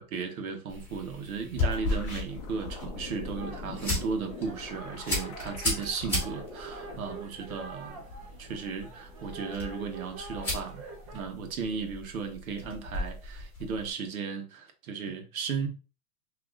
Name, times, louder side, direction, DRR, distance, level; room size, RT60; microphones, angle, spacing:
voice 1, 0.0-8.1 8.4-10.9 11.1-15.7, right 5 dB, 85° right, 1.2 m, -35 dB
sound 1, 0.7-13.9, left 2 dB, 5° left, 1.8 m, -36 dB
sound 2, 1.6-7.2, left 5 dB, 25° left, 0.6 m, -45 dB
sound 3, 3.4-11.2, right 3 dB, 25° right, 0.5 m, -46 dB
6.2 x 2.9 x 2.4 m
supercardioid pair, 170°, 41 cm